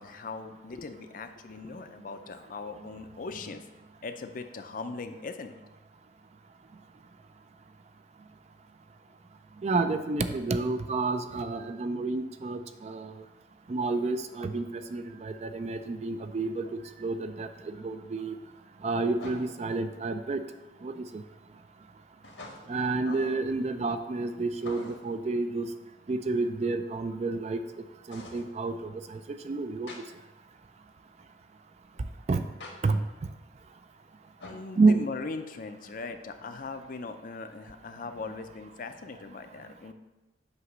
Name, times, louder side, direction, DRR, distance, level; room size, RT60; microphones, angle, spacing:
voice 1, 0.0-3.6 4.0-5.5 23.1-23.4 34.5-39.9, left 4 dB, 45° left, 8 dB, 0.5 m, -40 dB
voice 2, 9.6-13.2 13.7-18.4 18.8-20.4 20.8-21.2 22.7-25.7 26.1-27.6 28.1-30.0 32.3-32.4 32.8-33.0 34.8-35.1, right 3 dB, 35° right, 9 dB, 0.3 m, -29 dB
sound 1, 16.5-16.6 19.2-19.7 22.2-22.9 24.6-25.2 28.1-28.5 29.9-30.0 32.6-32.7 34.4-34.7, left 2 dB, 85° left, 1.3 m, -45 dB
8.0 x 2.9 x 6.0 m, 1.1 s
head